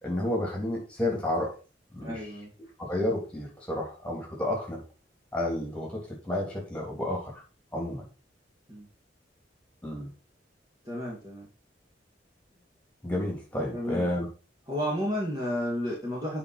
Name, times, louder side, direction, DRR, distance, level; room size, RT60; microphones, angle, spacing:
voice 1, 0.0-1.5 1.9-2.3 2.8-4.8 5.3-7.4 7.7-8.1 9.8-10.1 13.0-14.3, left 1 dB, 5° left, -2 dB, 3.4 m, -31 dB
voice 2, 2.0-2.5 8.7-8.9 10.8-11.5 13.7-14.1 14.7-16.4, equal, 20° right, -4 dB, 2.2 m, -32 dB
8.8 x 5.0 x 4.3 m, 0.33 s
head